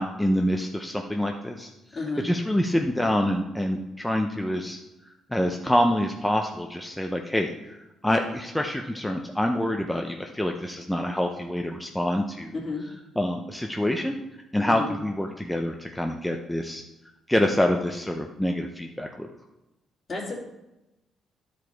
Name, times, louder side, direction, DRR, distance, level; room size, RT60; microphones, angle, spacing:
voice 1, 0.0-4.8 5.0-7.8 8.0-14.2 14.5-16.8 17.3-19.3, left 1 dB, 5° left, 3 dB, 0.7 m, -26 dB
voice 2, 1.9-2.2 12.6-12.8 14.6-14.9 20.1-20.4, left 3 dB, 40° left, -1 dB, 2.7 m, -31 dB
10.5 x 5.0 x 4.6 m, 0.97 s
cardioid pair, 90°, 0 cm